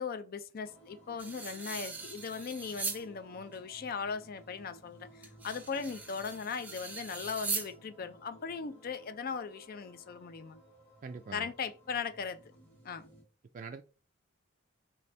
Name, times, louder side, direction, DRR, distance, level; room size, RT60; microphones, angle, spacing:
voice 1, 0.0-10.6 11.3-12.4 12.8-13.0, left 5 dB, 45° left, 0.4 m, -38 dB
Ambient Soundscape with Shimmer, 0.6-13.2, right 1 dB, 10° left, 1.4 m, -58 dB
sound 1, 1.2-3.0 3.5-3.6 5.2-7.7, right 4 dB, 5° right, 0.7 m, -40 dB
voice 2, 11.0-11.5 13.5-13.8, right 4 dB, 40° right, 0.3 m, -43 dB
4.1 x 3.3 x 3.2 m
head